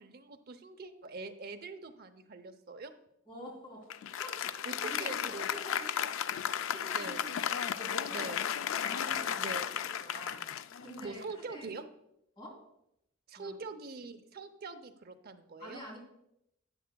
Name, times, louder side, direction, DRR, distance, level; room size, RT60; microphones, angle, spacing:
voice 1, 0.0-2.9 4.6-5.5 6.8-7.4 8.1-8.5 9.3-9.7 11.0-11.8 13.3-15.8, right 3 dB, 50° right, 7 dB, 0.7 m, -44 dB
voice 2, 3.3-3.9 4.2-6.0 6.4-7.4 7.7-9.4 10.0-10.4 10.8-11.7 12.4-12.6 13.4-13.5 15.6-16.0, equal, 25° left, -2 dB, 3.0 m, -47 dB
Applause, 3.9-11.5, left 9 dB, 70° left, 0.3 m, -34 dB
12.5 x 9.3 x 2.3 m, 0.79 s
head